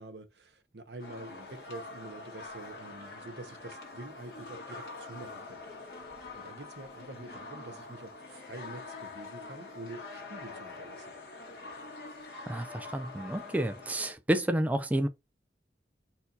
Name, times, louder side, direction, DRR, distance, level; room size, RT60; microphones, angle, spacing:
voice 1, 0.0-6.1 6.3-11.1, right 2 dB, 75° right, 1.0 m, -47 dB
sound 1, 1.0-14.1, left 3 dB, 65° left, 1.8 m, -45 dB
voice 2, 12.5-15.1, right 1 dB, 10° right, 0.3 m, -30 dB
4.4 x 2.7 x 3.9 m
head